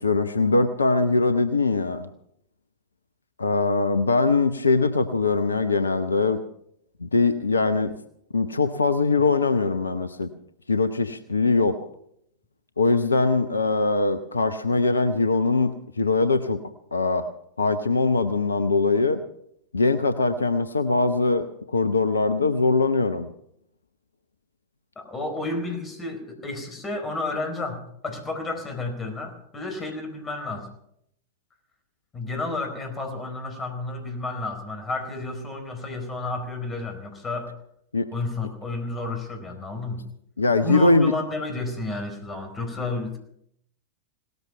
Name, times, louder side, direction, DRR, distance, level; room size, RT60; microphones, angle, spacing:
voice 1, 0.0-2.1 3.4-6.4 7.0-7.9 8.3-10.3 10.7-11.8 12.8-16.6 16.9-17.3 17.6-19.2 19.7-23.3 37.9-38.1 40.4-41.1, left 3 dB, 75° left, 11 dB, 0.8 m, -22 dB
voice 2, 25.0-30.7 32.1-37.5 38.1-40.1 40.6-43.2, left 2 dB, 20° left, 5 dB, 4.4 m, -31 dB
18.0 x 13.5 x 5.6 m, 0.72 s
figure-of-eight pair, 90°, 0 cm